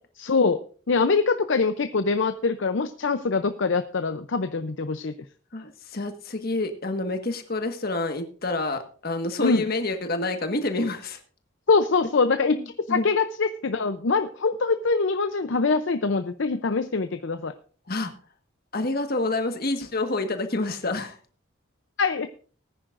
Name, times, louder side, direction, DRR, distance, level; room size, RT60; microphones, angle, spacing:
voice 1, 0.2-5.1 9.4-9.7 11.7-12.6 12.9-17.5 22.0-22.3, left 4 dB, 65° left, 10 dB, 0.6 m, -24 dB
voice 2, 5.5-11.2 12.5-13.1 17.9-18.1 18.7-21.2, left 2 dB, 50° left, 6 dB, 1.5 m, -28 dB
19.5 x 10.0 x 2.5 m, 0.41 s
head